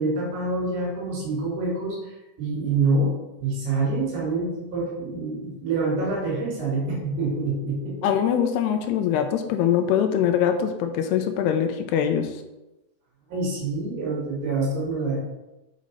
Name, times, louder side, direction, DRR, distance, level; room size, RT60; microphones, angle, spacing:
voice 1, 0.0-3.1 3.4-8.0 13.3-15.2, right 3 dB, 65° right, -4 dB, 4.5 m, -26 dB
voice 2, 8.0-12.3, left 9 dB, 80° left, 7 dB, 2.5 m, -23 dB
7.9 x 5.1 x 5.3 m, 0.99 s
omnidirectional pair, 5.1 m